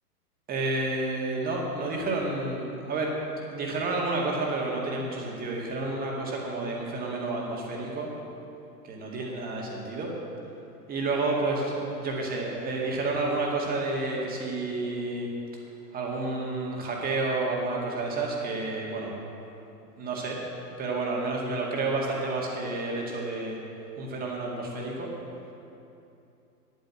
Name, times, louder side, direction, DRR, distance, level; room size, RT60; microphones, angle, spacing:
voice 1, 0.5-3.1 3.5-8.1 8.8-10.1 10.9-15.3 15.9-19.1 20.0-20.4 20.8-23.6 24.0-25.1, right 2 dB, 20° right, -2 dB, 2.0 m, -30 dB
10.5 x 9.2 x 7.4 m, 2.8 s
figure-of-eight pair, 105°, 48 cm